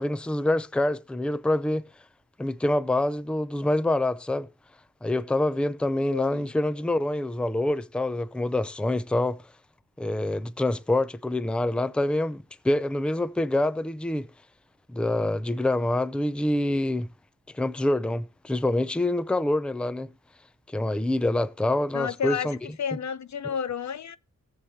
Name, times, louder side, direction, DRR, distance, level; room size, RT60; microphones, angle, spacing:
voice 1, 0.0-1.8 2.4-4.5 5.0-9.4 10.0-14.3 14.9-17.1 17.5-20.1 20.7-22.6, left 1 dB, 5° left, 0.5 m, -26 dB
voice 2, 6.1-6.5 21.9-24.2, left 7 dB, 65° left, 0.5 m, -31 dB
19.0 x 7.2 x 2.8 m
wide cardioid pair, 140°, 31 cm